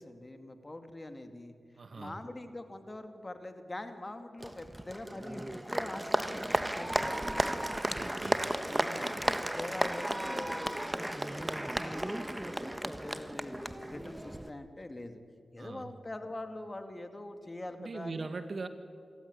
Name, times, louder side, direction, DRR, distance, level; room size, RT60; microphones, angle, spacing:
voice 1, 0.0-1.5 2.0-7.5 8.6-15.2 15.5-18.3, left 1 dB, 30° left, 8 dB, 2.4 m, -44 dB
voice 2, 1.8-2.2 7.9-8.4 15.6-15.9 17.8-18.7, right 3 dB, 60° right, 9 dB, 1.8 m, -40 dB
Applause, 4.4-14.5, right 1 dB, 15° right, 1.3 m, -34 dB
26.5 x 13.5 x 10.0 m, 2.3 s
cardioid pair, 45°, 0 cm